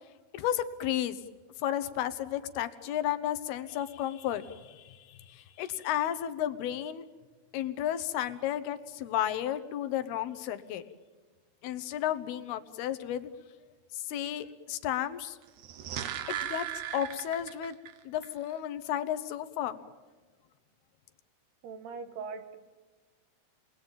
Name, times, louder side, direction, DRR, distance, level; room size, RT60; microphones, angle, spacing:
voice 1, 0.3-1.2 1.6-7.0 7.5-10.8 11.6-13.3 13.9-15.4 16.3-16.7 16.9-17.8 18.0-19.8, left 11 dB, 80° left, 11 dB, 3.0 m, -33 dB
sound 1, 15.5-17.9 18.2-18.3, right 11 dB, 65° right, 2.4 m, -37 dB
voice 2, 21.6-22.6, right 5 dB, 85° right, 9 dB, 3.6 m, -40 dB
28.5 x 21.0 x 9.0 m, 1.3 s
omnidirectional pair, 4.5 m